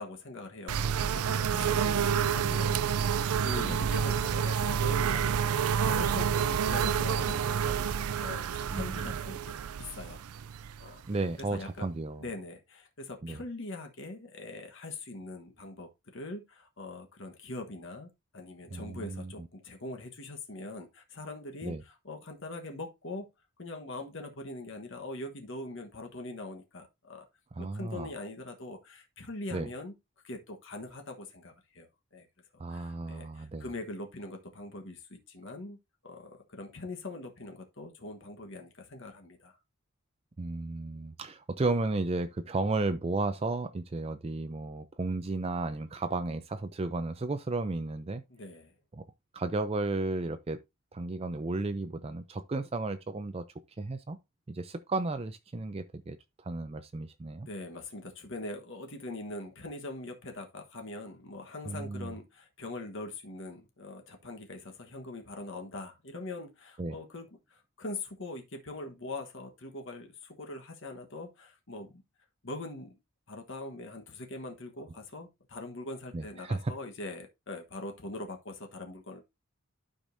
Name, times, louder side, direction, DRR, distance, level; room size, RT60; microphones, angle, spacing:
voice 1, 0.0-10.2 10.8-11.0 11.4-11.9 12.2-23.3 23.6-27.3 27.6-29.9 30.2-32.3 32.7-35.8 36.0-39.6 48.3-48.7 57.4-72.0 72.4-73.0 73.3-79.2, left 2 dB, 55° left, 1.2 m, -42 dB
sound 1, 0.7-11.3, right 7 dB, 85° right, 0.4 m, -29 dB
voice 2, 1.5-1.8 3.6-3.8 8.7-9.2 11.1-12.3 13.2-13.4 18.7-19.5 21.6-21.8 27.5-28.1 29.5-29.7 32.6-33.7 40.4-48.2 48.9-49.0 49.3-50.6 50.9-53.4 53.8-54.2 54.5-57.5 61.7-62.1 66.8-67.0 76.1-76.7, right 3 dB, 25° right, 0.4 m, -34 dB
12.0 x 5.0 x 2.6 m
head